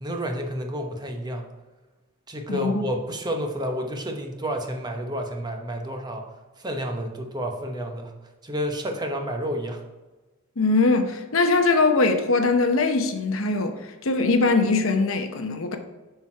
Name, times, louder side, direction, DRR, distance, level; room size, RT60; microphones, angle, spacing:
voice 1, 0.0-1.4 2.3-6.2 6.6-8.1 8.4-9.8, equal, 20° right, 0.9 m, -30 dB
voice 2, 2.5-2.8 10.6-13.7 14.0-15.8, left 3 dB, 80° left, 0.8 m, -21 dB
6.5 x 6.2 x 4.4 m
head